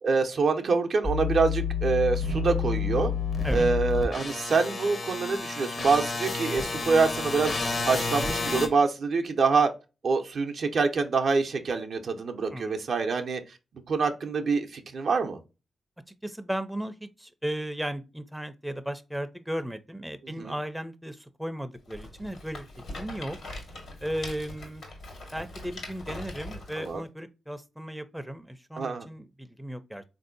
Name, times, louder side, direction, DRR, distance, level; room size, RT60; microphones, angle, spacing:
voice 1, 0.0-3.1 3.5-7.5 7.9-9.7 10.0-13.4 13.9-15.4 20.4-20.5 26.8-27.0 28.8-29.0, right 4 dB, 65° right, 0.5 m, -25 dB
sound 1, 1.0-8.7, left 4 dB, 55° left, 0.8 m, -30 dB
voice 2, 16.2-22.7 23.0-23.4 24.0-24.8 25.3-30.0, equal, 5° right, 0.5 m, -35 dB
Rattle, 21.9-27.0, left 2 dB, 75° left, 1.4 m, -42 dB
3.6 x 2.6 x 2.5 m
supercardioid pair, 45°, 0 cm